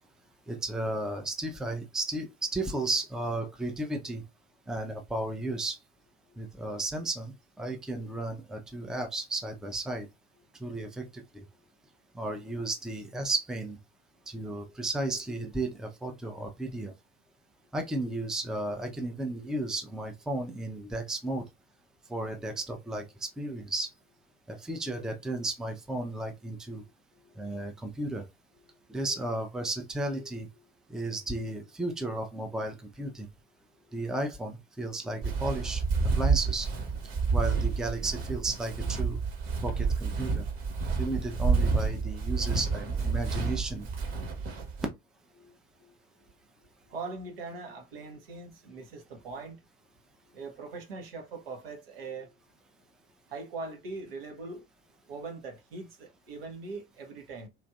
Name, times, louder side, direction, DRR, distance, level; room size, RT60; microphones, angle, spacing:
voice 1, 0.5-4.2 4.7-5.8 6.4-10.1 10.6-11.4 12.1-13.8 14.3-16.9 17.7-21.4 22.1-23.9 24.5-26.8 27.4-28.2 28.9-30.5 30.9-33.3 33.9-35.8 36.1-36.7 37.3-39.2 39.6-40.4 41.0-43.9, right 2 dB, ahead, 0.4 m, -34 dB
voice 2, 27.1-27.7 28.5-28.8 30.6-30.7 31.0-31.1 33.8-34.0 45.4-45.9 46.2-46.3 46.9-49.6 50.3-52.3 53.3-54.6 55.1-57.5, right 3 dB, 75° right, 0.8 m, -42 dB
Walk footsteps, 35.2-44.9, right 4 dB, 50° right, 1.0 m, -29 dB
3.1 x 2.5 x 2.3 m
figure-of-eight pair, 60°, 30 cm